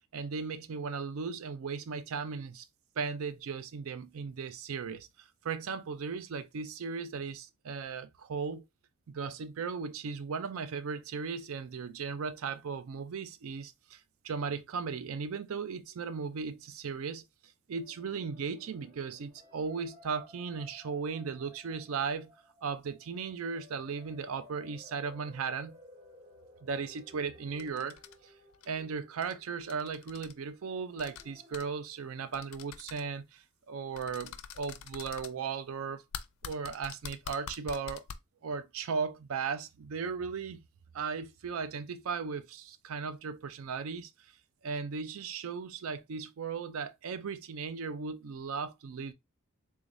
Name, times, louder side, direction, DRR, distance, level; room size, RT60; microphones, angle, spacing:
voice 1, 0.1-2.7 3.0-8.6 9.1-22.3 22.6-25.8 26.6-28.0 28.2-28.3 28.7-36.0 36.4-38.0 38.4-40.6 40.9-44.1 44.6-49.1, right 5 dB, 70° right, 0.4 m, -37 dB
sound 1, 17.7-31.6, left 1 dB, 55° right, 1.7 m, -58 dB
sound 2, 27.6-28.1 28.5-28.7 29.2-29.3 29.6-30.3 31.0-31.2 31.5-31.6 32.3-33.0 34.0-35.3 36.1-38.1, left 8 dB, 80° left, 0.4 m, -44 dB
3.5 x 3.4 x 2.5 m
head